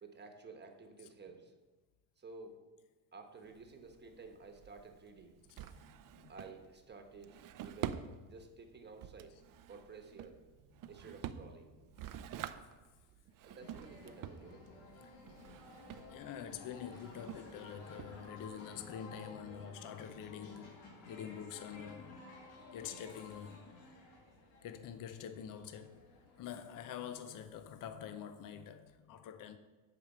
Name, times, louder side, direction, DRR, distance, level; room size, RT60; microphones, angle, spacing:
voice 1, 0.0-1.5 2.2-2.6 3.1-5.4 6.3-9.3 9.7-10.4 10.9-11.7 13.4-14.7 18.2-18.4 22.4-22.6, right 4 dB, 25° right, 1.2 m, -53 dB
Drawer open or close, 3.4-18.6, right 10 dB, 50° right, 0.5 m, -48 dB
voice 2, 5.5-6.3 10.8-10.9 11.3-11.5 12.0-12.7 15.0-15.1 16.1-20.8 21.1-22.2 22.7-23.6 24.6-26.1 26.4-29.6, left 8 dB, 45° left, 0.6 m, -47 dB
sound 1, 13.6-26.4, left 3 dB, 90° left, 2.2 m, -54 dB
10.5 x 5.1 x 6.6 m
cardioid pair, 130°, 44 cm